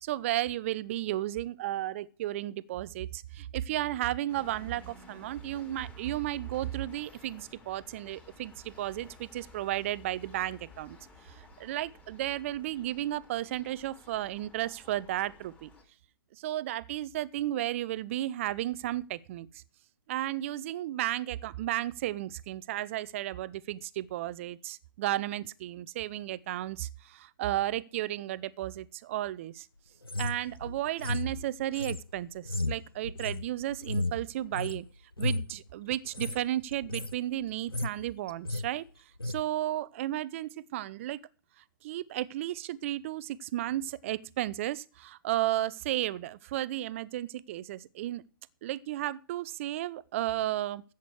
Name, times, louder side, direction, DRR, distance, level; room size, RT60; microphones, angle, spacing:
voice 1, 0.0-11.0 11.3-15.7 16.3-19.6 20.1-29.7 30.2-34.9 35.2-38.9 39.3-41.2 41.8-48.2 48.6-50.8, right 14 dB, 35° right, 0.8 m, -33 dB
sound 1, 4.3-15.8, left 3 dB, 10° left, 4.0 m, -55 dB
sound 2, 30.0-34.8 35.1-35.5 36.0-36.4 36.7-37.2 37.5-38.0 38.3-38.7 39.2-39.4, left 2 dB, 90° left, 0.8 m, -34 dB
15.5 x 8.3 x 4.8 m
figure-of-eight pair, 125°, 12 cm